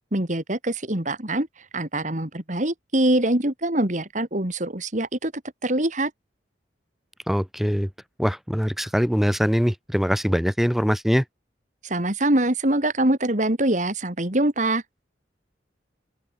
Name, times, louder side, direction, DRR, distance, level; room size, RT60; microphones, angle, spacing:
voice 1, 0.1-1.5 1.7-6.1 11.8-14.8, right 1 dB, 45° right, 2.8 m, -24 dB
voice 2, 7.3-7.9 8.2-11.2, equal, ahead, 3.3 m, -22 dB
open air
head